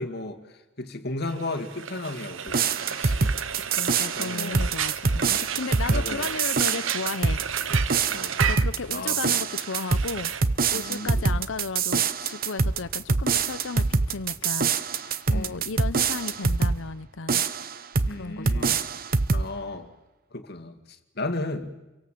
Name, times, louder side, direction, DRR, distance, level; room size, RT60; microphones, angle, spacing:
voice 1, 0.0-3.3 4.2-4.7 5.9-6.3 8.1-8.4 8.9-9.4 10.7-11.4 15.3-15.7 18.1-18.8 19.3-19.9 20.3-21.7, left 2 dB, 55° left, 5 dB, 2.2 m, -34 dB
Frying (food), 1.3-10.4, right 8 dB, 85° right, 1.0 m, -33 dB
sound 1, 2.5-16.8 17.3-18.1 18.4-19.5, right 4 dB, 50° right, 0.9 m, -25 dB
voice 2, 3.7-7.6 8.5-10.3 10.7-17.4 18.1-19.0, left 4 dB, 80° left, 14 dB, 0.8 m, -35 dB
28.5 x 23.5 x 7.7 m, 1.1 s
head